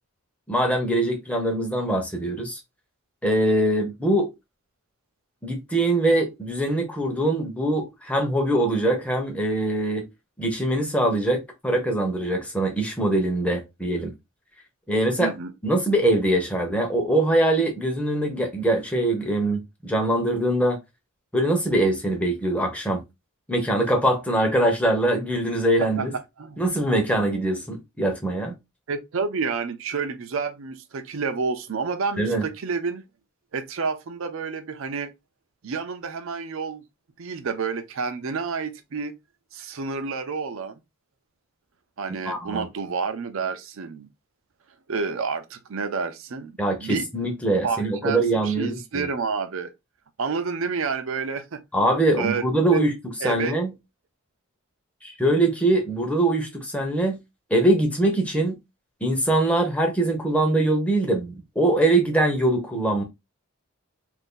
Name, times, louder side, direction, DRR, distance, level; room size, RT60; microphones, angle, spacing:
voice 1, 0.5-2.6 3.2-4.3 5.4-10.1 10.4-14.1 14.9-15.3 15.6-20.8 21.3-23.0 23.5-26.1 26.6-28.5 32.2-32.4 42.3-42.6 46.6-49.1 51.7-52.9 53.2-53.7 55.0-57.2 57.5-58.6 59.0-63.0, right 1 dB, 5° left, 0.7 m, -23 dB
voice 2, 15.2-15.5 26.0-26.1 26.4-26.6 28.9-33.0 33.5-35.1 35.6-36.8 37.2-39.1 39.5-40.8 42.0-44.1 44.9-47.1 47.6-49.7 50.2-51.6 52.2-52.8 53.2-53.6, right 5 dB, 60° right, 0.5 m, -29 dB
2.6 x 2.5 x 3.7 m
head